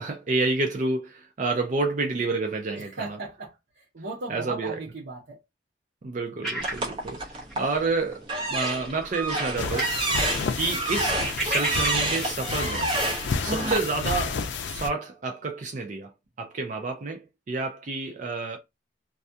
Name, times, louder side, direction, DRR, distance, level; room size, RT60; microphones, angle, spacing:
voice 1, 0.0-3.2 4.3-4.8 6.0-7.2 7.5-10.0 10.5-12.9 13.4-16.1 16.4-18.6, right 3 dB, 45° right, 0.4 m, -29 dB
voice 2, 2.7-5.4, right 3 dB, 80° right, 0.8 m, -37 dB
sound 1, 6.4-7.8 8.1-8.3 8.6-10.0 10.3-12.3, right 1 dB, ahead, 0.8 m, -33 dB
sound 2, 6.6-7.7 8.2-13.8, right 2 dB, 30° right, 0.8 m, -29 dB
sound 3, 9.6-14.9, left 5 dB, 85° left, 0.4 m, -31 dB
2.3 x 2.2 x 2.6 m
head